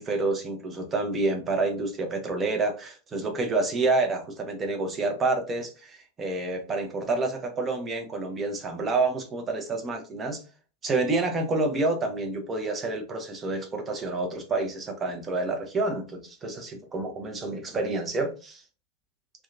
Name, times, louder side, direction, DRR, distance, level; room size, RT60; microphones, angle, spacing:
voice 1, 0.0-10.4 10.8-18.6, right 3 dB, 20° right, 4 dB, 0.6 m, -28 dB
2.7 x 2.2 x 2.4 m, 0.34 s
figure-of-eight pair, 90°, 0 cm